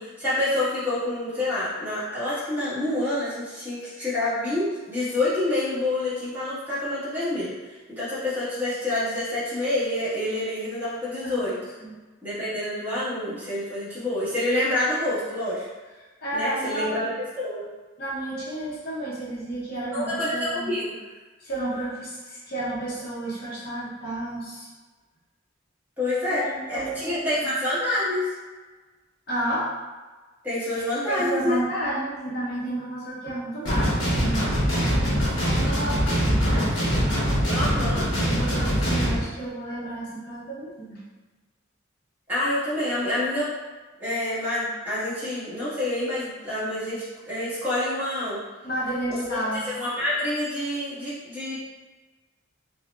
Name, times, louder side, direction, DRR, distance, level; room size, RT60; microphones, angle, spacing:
voice 1, 0.0-7.5 7.9-11.6 12.2-15.6 16.3-17.6 19.9-20.9 26.0-28.3 30.4-31.6 37.5-38.0 42.3-43.5 44.0-48.4 49.1-49.4 49.7-51.6, left 1 dB, 10° right, -12 dB, 1.3 m, -27 dB
voice 2, 16.2-17.1 18.0-20.7 21.4-24.7 26.3-27.4 29.3-29.7 30.7-37.9 38.2-41.0 48.6-49.7, right 1 dB, 50° left, -7 dB, 0.8 m, -32 dB
sound 1, 33.6-39.2, equal, 80° left, 1.0 m, -23 dB
4.5 x 2.1 x 2.3 m, 1.3 s
head